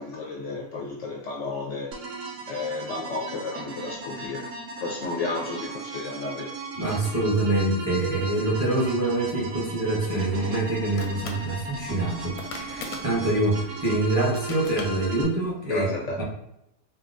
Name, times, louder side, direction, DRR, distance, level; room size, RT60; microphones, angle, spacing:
voice 1, 0.0-2.0 2.5-4.5 4.8-6.6 15.6-16.2, left 3 dB, 65° left, -1 dB, 0.8 m, -32 dB
sound 1, 1.9-15.2, right 3 dB, 65° right, 0.9 m, -37 dB
voice 2, 6.8-15.9 16.2-16.3, right 2 dB, 15° right, -5 dB, 0.6 m, -25 dB
sound 2, 10.0-15.5, left 3 dB, 90° left, 1.1 m, -43 dB
3.8 x 2.2 x 2.4 m, 0.82 s
omnidirectional pair, 1.6 m